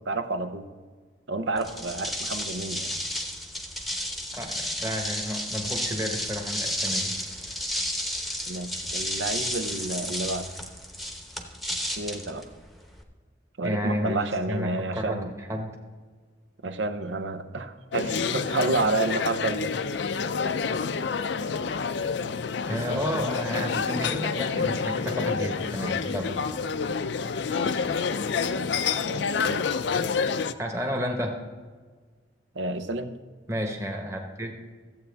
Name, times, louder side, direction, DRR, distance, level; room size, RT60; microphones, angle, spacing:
voice 1, 0.0-0.7 1.3-2.9 8.5-10.5 12.0-12.5 13.6-15.3 16.6-19.7 28.4-28.7 29.0-29.7 32.5-33.1, right 2 dB, 80° right, 10 dB, 0.7 m, -30 dB
sound 1, 1.6-13.0, equal, ahead, 0.9 m, -32 dB
voice 2, 4.3-7.1 13.6-14.2 14.5-15.2 15.5-15.7 22.7-26.3 30.6-31.4 33.5-34.5, equal, 15° right, 2 dB, 1.2 m, -31 dB
sound 2, 17.9-30.5, left 5 dB, 70° left, 0.4 m, -28 dB
14.0 x 8.2 x 3.4 m, 1.5 s
head